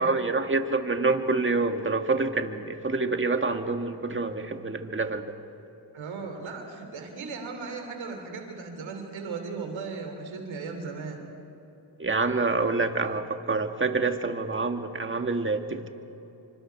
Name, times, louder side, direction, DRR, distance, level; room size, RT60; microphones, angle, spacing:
voice 1, 0.0-5.3 12.0-15.9, right 3 dB, 25° right, 6 dB, 1.8 m, -27 dB
voice 2, 5.9-11.2, right 4 dB, 90° right, 4 dB, 3.1 m, -37 dB
27.0 x 25.5 x 4.6 m, 3.0 s
supercardioid pair, 45°, 45 cm